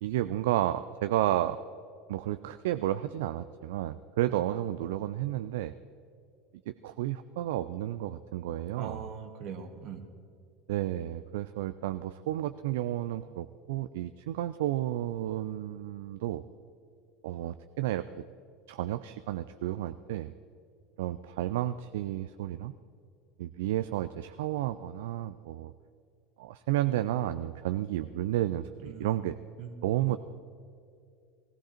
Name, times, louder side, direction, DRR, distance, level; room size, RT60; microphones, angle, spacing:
voice 1, 0.0-1.6 2.1-5.7 6.7-9.0 10.7-16.4 17.2-18.0 18.7-20.3 21.0-22.7 23.4-25.7 26.4-29.4 29.8-30.2, right 13 dB, 70° right, 11 dB, 0.4 m, -32 dB
voice 2, 8.8-10.0 28.8-29.3 29.6-29.7 30.0-30.2, right 6 dB, 55° right, 6 dB, 1.6 m, -41 dB
19.0 x 14.5 x 4.4 m, 2.4 s
hypercardioid pair, 75°, 0 cm